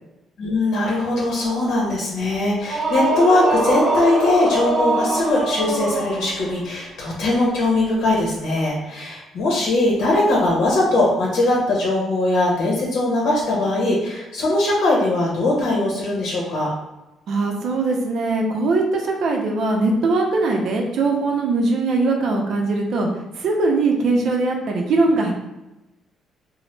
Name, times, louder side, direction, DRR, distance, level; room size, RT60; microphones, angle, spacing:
voice 1, 0.4-16.7, left 2 dB, 75° left, -3 dB, 0.7 m, -20 dB
sound 1, 2.6-6.6, right 2 dB, 50° right, 0.9 m, -23 dB
voice 2, 17.3-23.1 23.4-25.3, right 3 dB, 70° right, 1 dB, 0.5 m, -21 dB
2.9 x 2.0 x 3.2 m, 0.98 s
cardioid pair, 115°, 0 cm